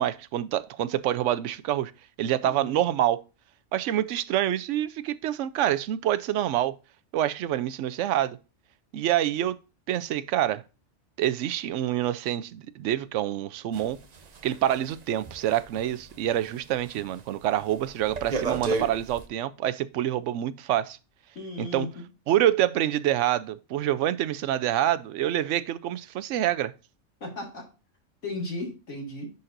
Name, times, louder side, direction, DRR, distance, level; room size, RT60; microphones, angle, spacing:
voice 1, 0.0-1.9 2.2-3.2 3.7-6.8 7.1-8.4 8.9-9.6 9.9-10.6 11.2-14.0 14.4-21.0 21.6-21.9 22.3-26.7, right 12 dB, 85° right, 0.9 m, -26 dB
voice 2, 2.4-2.8 21.3-21.9 27.2-27.7 28.2-29.3, left 2 dB, 85° left, 2.4 m, -35 dB
sound 1, 13.7-16.5 16.9-17.2 17.5-19.3, right 4 dB, 40° right, 0.7 m, -33 dB
10.5 x 4.2 x 2.5 m
omnidirectional pair, 1.2 m